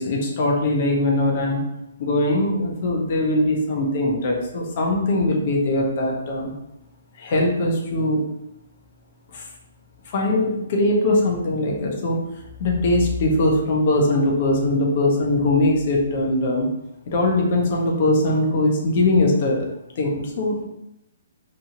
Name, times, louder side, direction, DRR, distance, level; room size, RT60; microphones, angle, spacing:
voice 1, 0.0-1.6 2.0-6.5 7.2-8.2 9.3-9.4 10.1-12.2 12.6-16.7 17.1-19.7 20.0-20.7, left 1 dB, 50° left, 0 dB, 0.7 m, -21 dB
3.0 x 2.3 x 2.8 m, 0.86 s
figure-of-eight pair, 130°, 0 cm